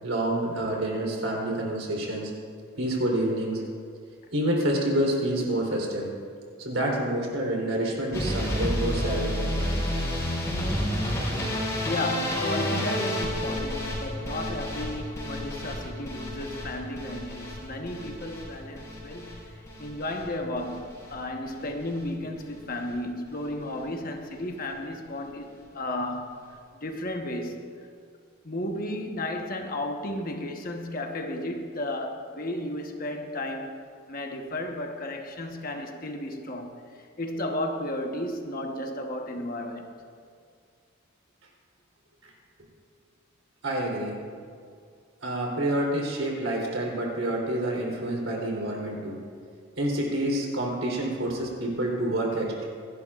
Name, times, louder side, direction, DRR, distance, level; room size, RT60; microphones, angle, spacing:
voice 1, 0.0-2.3 2.8-3.6 4.3-6.1 6.6-9.8 10.6-10.7 43.6-44.2 45.2-49.2 49.8-52.6, right 1 dB, 75° right, -2 dB, 3.5 m, -28 dB
sound 1, 8.1-20.3 20.6-21.1 21.5-22.0 22.4-22.6 22.9-23.0 23.3-23.4, equal, 15° left, 4.2 m, -30 dB
voice 2, 11.9-26.4 26.7-27.7 28.4-33.7 34.1-39.9, left 1 dB, 45° left, 3 dB, 1.1 m, -33 dB
27.0 x 11.5 x 2.5 m, 2.2 s
head